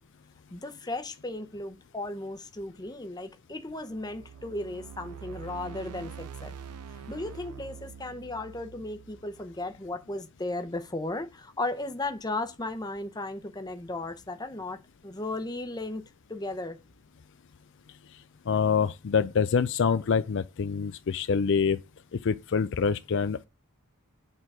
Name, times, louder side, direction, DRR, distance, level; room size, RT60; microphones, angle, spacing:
voice 1, 0.5-6.6 7.1-16.0 16.3-16.8, left 2 dB, 20° left, 0.7 m, -35 dB
sound 1, 3.9-10.1, right 7 dB, 90° right, 0.5 m, -45 dB
voice 2, 18.5-21.8 22.1-23.5, left 6 dB, 55° left, 0.4 m, -26 dB
8.9 x 3.9 x 6.1 m
head